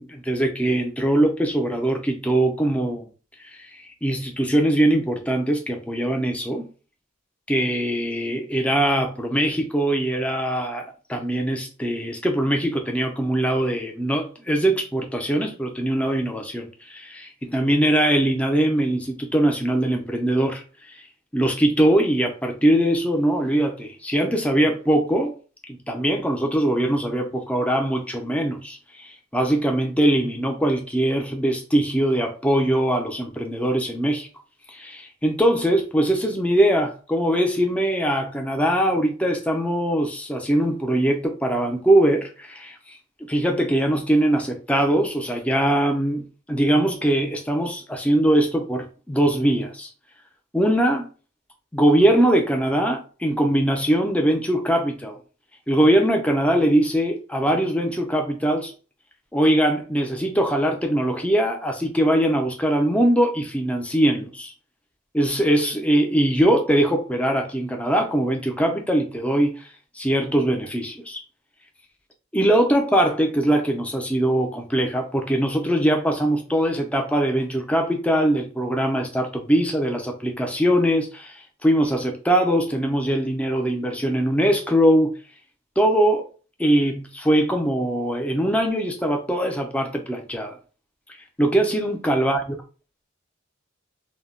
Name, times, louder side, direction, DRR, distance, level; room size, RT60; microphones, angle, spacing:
voice 1, 0.0-3.1 3.4-6.7 7.5-20.6 20.9-21.0 21.3-25.3 25.7-34.3 34.7-43.0 43.3-49.9 50.5-51.1 51.7-55.2 55.7-58.7 59.3-64.5 65.1-69.7 69.9-71.2 72.3-85.1 85.8-86.3 86.6-90.6 91.4-92.4, right 1 dB, 5° left, 0.4 m, -22 dB
2.2 x 2.1 x 3.5 m
head